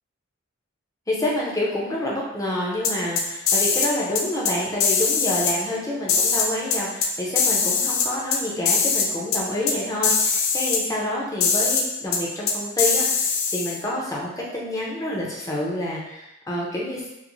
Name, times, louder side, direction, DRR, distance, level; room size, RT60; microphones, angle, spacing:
voice 1, 1.1-17.1, left 1 dB, 15° left, -4 dB, 0.5 m, -28 dB
sound 1, 2.8-3.9 4.2-4.5 4.8-5.5 6.1-7.1 7.4-8.4 8.7-9.1 9.3-9.4 9.7-9.8 10.0-10.8 11.4-11.8 12.1-12.2 12.5-13.8, left 5 dB, 75° left, 0.4 m, -21 dB
2.5 x 2.5 x 3.0 m, 0.92 s
head